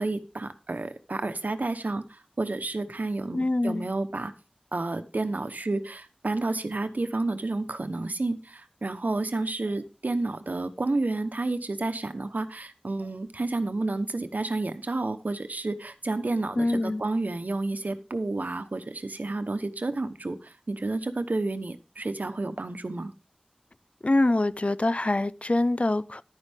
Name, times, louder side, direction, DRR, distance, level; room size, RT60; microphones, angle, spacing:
voice 1, 0.0-4.3 4.7-23.1, right 2 dB, 90° right, 1.0 m, -30 dB
voice 2, 3.3-3.9 16.6-17.0 24.0-26.2, left 2 dB, 50° left, 0.5 m, -24 dB
11.5 x 9.8 x 3.5 m
wide cardioid pair, 45°, 3 cm